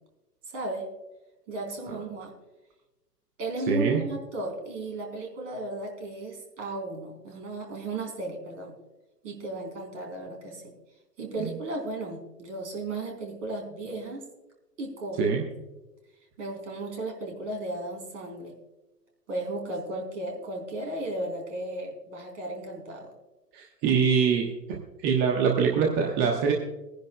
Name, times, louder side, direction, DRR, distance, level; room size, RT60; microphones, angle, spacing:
voice 1, 0.5-0.9 1.5-2.3 3.4-8.8 9.2-10.7 11.2-14.3 14.8-15.3 16.4-18.5 19.3-23.1, right 2 dB, 50° right, 2 dB, 4.0 m, -35 dB
voice 2, 3.7-4.0 11.4-11.5 15.2-15.5 23.5-24.5 25.0-26.5, right 6 dB, 25° right, 0 dB, 1.2 m, -23 dB
23.5 x 10.5 x 2.3 m, 1.0 s
figure-of-eight pair, 110°, 49 cm